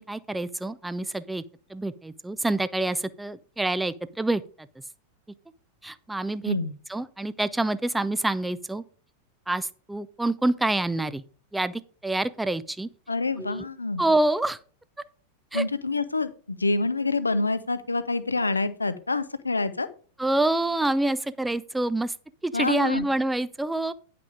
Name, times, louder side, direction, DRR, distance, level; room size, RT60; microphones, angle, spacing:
voice 1, 0.0-1.4 1.7-4.7 5.8-6.5 6.9-8.8 9.5-11.2 11.5-12.9 13.4-13.6 14.0-14.6 15.5-15.6 20.2-22.1 22.4-23.9, right 2 dB, 5° right, 15 dB, 0.5 m, -27 dB
voice 2, 13.1-14.0 15.5-19.9 22.5-23.1, left 3 dB, 80° left, 14 dB, 0.7 m, -27 dB
9.9 x 5.9 x 4.9 m, 0.41 s
figure-of-eight pair, 90°, 0 cm